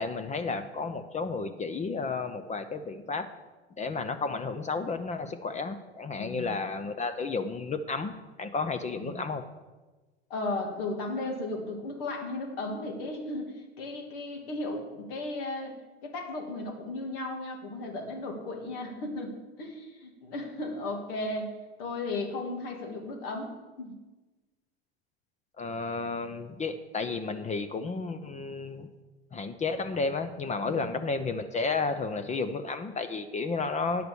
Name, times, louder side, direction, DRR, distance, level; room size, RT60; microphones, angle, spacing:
voice 1, 0.0-3.3 3.8-8.1 8.4-9.5 25.6-28.9 29.3-34.1, left 4 dB, 20° left, 9 dB, 0.7 m, -32 dB
voice 2, 10.3-15.7 16.0-21.5 21.8-23.9 30.6-31.0, left 2 dB, 65° left, 2 dB, 2.6 m, -35 dB
9.9 x 5.9 x 7.0 m, 1.2 s
hypercardioid pair, 95°, 31 cm